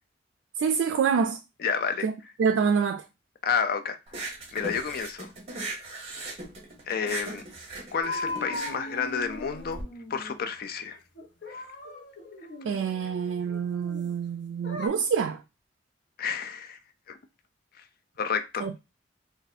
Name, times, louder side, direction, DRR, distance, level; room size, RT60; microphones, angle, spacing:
voice 1, 0.6-1.4 2.0-2.1 2.4-3.0 12.6-15.4 18.6-18.8, right 6 dB, 85° right, 0.3 m, -26 dB
voice 2, 1.6-2.1 3.4-4.0 4.5-5.3 5.9-6.1 6.9-7.4 7.9-9.8 10.1-11.0 11.5-11.6 16.2-16.8 17.1-17.2 17.8-17.9 18.2-18.8, left 6 dB, 55° left, 0.4 m, -30 dB
sound 1, 4.1-9.8, right 2 dB, 35° right, 0.9 m, -38 dB
sound 2, 8.0-10.5 11.2-14.1 14.6-14.9, left 2 dB, 70° left, 1.0 m, -38 dB
2.6 x 2.5 x 4.0 m
head